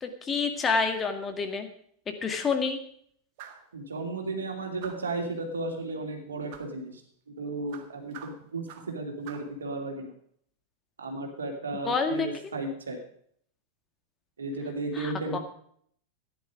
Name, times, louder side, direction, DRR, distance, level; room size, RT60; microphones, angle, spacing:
voice 1, 0.0-1.7 2.2-2.8 11.8-12.6 15.0-15.4, left 5 dB, 20° left, 6 dB, 1.8 m, -28 dB
sound 1, 3.4-3.7 4.8-5.2 6.5-6.8 7.7-9.0 9.3-9.6, right 9 dB, 50° right, 1.6 m, -46 dB
voice 2, 3.7-7.0 7.3-10.1 11.0-13.0 14.4-15.4, right 2 dB, 70° right, 3 dB, 2.8 m, -34 dB
14.5 x 10.5 x 5.0 m, 0.64 s
figure-of-eight pair, 90°, 0 cm